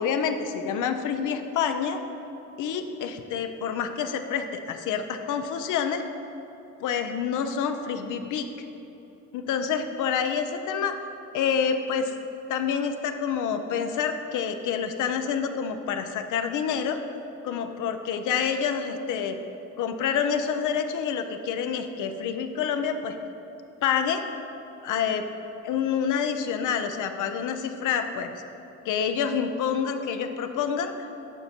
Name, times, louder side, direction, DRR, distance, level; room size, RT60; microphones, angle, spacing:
voice 1, 0.0-2.0 2.6-6.0 6.8-8.5 9.3-11.0 11.3-12.1 12.5-17.0 17.4-19.4 19.8-23.2 23.8-24.2 24.8-25.2 25.6-28.3 28.8-30.9, left 7 dB, 80° left, 7 dB, 0.7 m, -27 dB
11.5 x 5.2 x 4.4 m, 3.0 s
cardioid pair, 90°, 30 cm